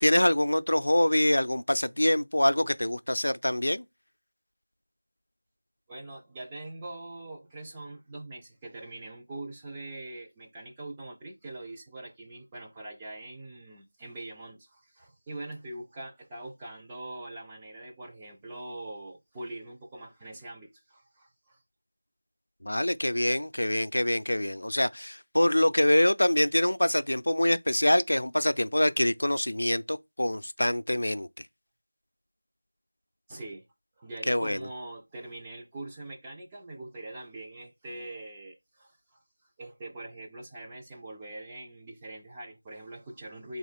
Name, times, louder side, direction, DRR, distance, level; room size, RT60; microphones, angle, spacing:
voice 1, 0.0-3.8 22.6-31.3 34.3-34.6, left 1 dB, 65° left, 0.3 m, -25 dB
voice 2, 5.9-21.6 33.3-33.6 34.0-39.2 39.6-43.6, right 2 dB, 10° right, 0.3 m, -43 dB
3.5 x 2.8 x 4.1 m
figure-of-eight pair, 175°, 0 cm